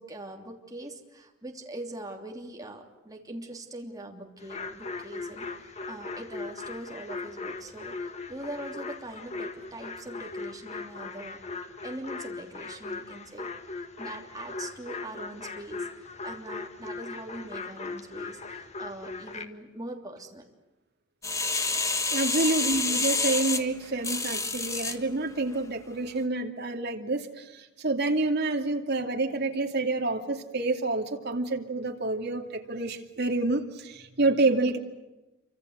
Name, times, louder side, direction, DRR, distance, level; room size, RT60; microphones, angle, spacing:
voice 1, 0.0-11.4 11.8-13.5 14.0-20.4 22.3-22.6, right 1 dB, 20° right, 1 dB, 3.1 m, -42 dB
sound 1, 4.4-19.5, left 3 dB, 35° left, 1.6 m, -39 dB
sound 2, 21.2-25.0 25.5-25.6, left 3 dB, 15° left, 1.4 m, -28 dB
voice 2, 22.1-34.8, right 2 dB, 55° right, 4 dB, 2.5 m, -28 dB
27.5 x 25.0 x 8.1 m, 1.0 s
head